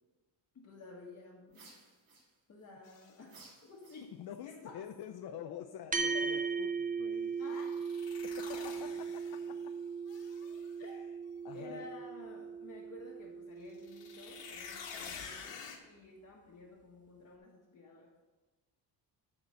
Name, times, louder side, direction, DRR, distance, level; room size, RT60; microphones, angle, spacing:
voice 1, 0.5-1.7 2.5-3.4 3.6-4.1 4.4-4.8 5.3-5.6 6.1-6.2 7.4-7.8 10.8-10.9 11.5-15.6 15.8-18.1, left 3 dB, 35° left, -4 dB, 1.4 m, -52 dB
sound 1, 1.5-2.7 3.2-4.4, right 3 dB, 55° right, 2.5 m, -58 dB
sound 2, 2.8-3.1 7.5-9.6 10.1-10.7 13.7-15.8, left 6 dB, 90° left, 1.7 m, -48 dB
voice 2, 4.2-7.6 8.2-9.6 10.8-11.2 11.4-11.9, left 10 dB, 60° left, 6 dB, 0.6 m, -47 dB
sound 3, 5.9-14.6, right 5 dB, 20° right, 0.6 m, -38 dB
13.0 x 4.4 x 6.5 m, 1.2 s
cardioid pair, 150°, 43 cm